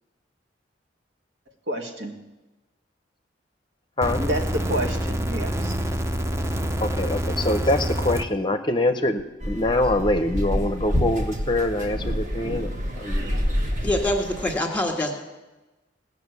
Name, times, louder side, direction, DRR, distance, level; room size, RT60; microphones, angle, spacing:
voice 1, 1.7-2.1 4.2-5.7, right 1 dB, 75° right, 1 dB, 1.9 m, -29 dB
sound 1, 4.0-8.2 9.2-9.3, equal, 15° right, 0.6 m, -26 dB
voice 2, 6.8-13.5, left 1 dB, 25° left, 8 dB, 0.6 m, -24 dB
sound 2, 9.4-14.6, equal, 45° right, 1.5 m, -27 dB
voice 3, 13.8-15.1, left 1 dB, 10° left, 2 dB, 1.8 m, -24 dB
18.0 x 6.6 x 8.2 m, 1.1 s
head